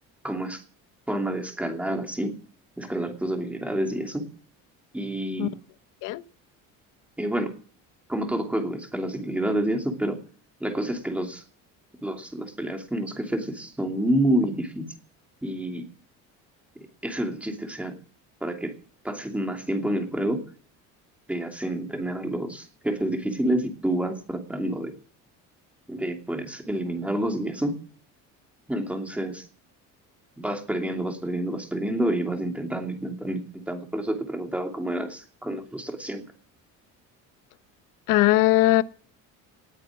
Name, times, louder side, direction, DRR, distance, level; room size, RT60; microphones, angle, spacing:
voice 1, 0.2-0.6 1.1-2.4 2.8-4.3 4.9-5.5 7.2-7.5 8.1-10.2 10.6-11.4 12.0-14.9 15.4-15.8 17.0-18.0 18.4-18.7 19.0-20.4 21.3-24.9 25.9-27.7 28.7-29.5 30.4-36.2, right 1 dB, 5° right, 2.8 m, -28 dB
voice 2, 38.1-38.8, left 17 dB, 75° left, 1.1 m, -19 dB
19.0 x 9.2 x 7.4 m
cardioid pair, 170°, 32 cm